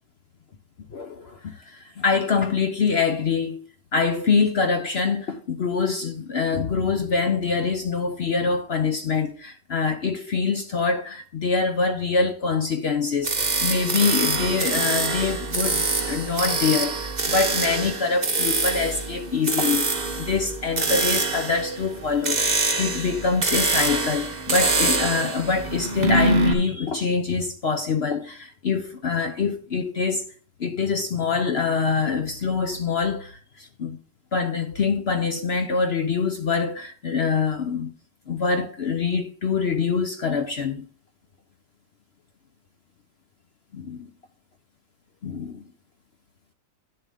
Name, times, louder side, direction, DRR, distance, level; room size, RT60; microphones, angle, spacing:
voice 1, 0.9-3.6 3.9-19.9 20.2-30.3 30.6-34.0 34.3-37.9 38.3-40.8 43.7-44.1 45.2-45.6, left 5 dB, 55° left, 0.7 m, -25 dB
sound 1, 13.2-26.5, right 2 dB, 25° right, 1.3 m, -25 dB
10.5 x 7.4 x 3.5 m
omnidirectional pair, 1.8 m